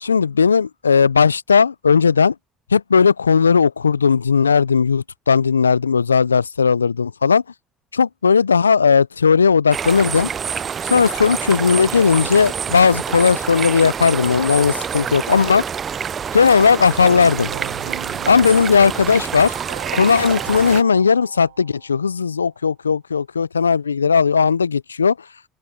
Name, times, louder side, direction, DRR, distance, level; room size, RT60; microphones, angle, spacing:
voice 1, 0.0-2.4 2.7-7.4 7.9-10.3 10.8-15.6 16.3-17.5 18.3-19.5 19.9-25.3, left 5 dB, 90° left, 0.4 m, -16 dB
sound 1, 9.7-20.8, right 7 dB, 40° right, 0.3 m, -27 dB
Keyboard (musical), 17.0-22.0, right 14 dB, 80° right, 0.6 m, -36 dB
open air
hypercardioid pair, 60°, 0 cm